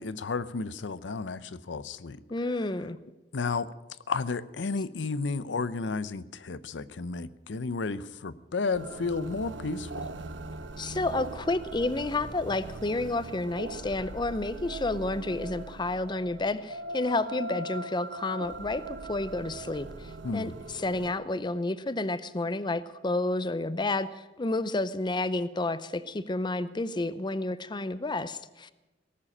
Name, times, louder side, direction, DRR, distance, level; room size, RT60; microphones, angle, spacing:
voice 1, 0.0-2.2 3.3-3.7 4.1-10.1 20.2-20.5, left 4 dB, 80° left, 15 dB, 0.6 m, -32 dB
voice 2, 2.3-3.0 10.8-28.7, left 2 dB, 25° left, 14 dB, 0.6 m, -30 dB
sound 1, 8.7-21.1, right 2 dB, 75° right, 1.0 m, -40 dB
18.0 x 7.5 x 9.9 m, 1.1 s
head